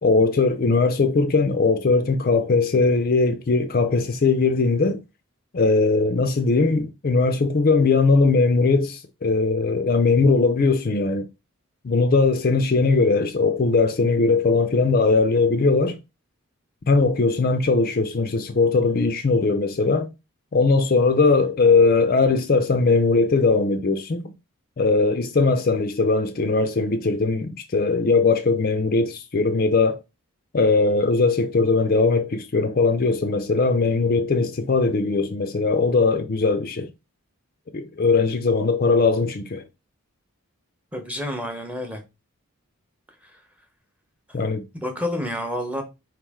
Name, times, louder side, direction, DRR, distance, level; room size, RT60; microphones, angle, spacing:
voice 1, 0.0-5.0 5.5-11.3 11.8-16.0 16.9-20.1 20.5-24.3 24.8-30.0 30.5-36.9 37.7-39.6 44.3-44.6, left 3 dB, 40° left, 0.4 m, -20 dB
voice 2, 40.9-42.0 43.2-43.3 44.7-45.8, left 1 dB, 5° right, 0.8 m, -29 dB
4.7 x 3.1 x 3.5 m
head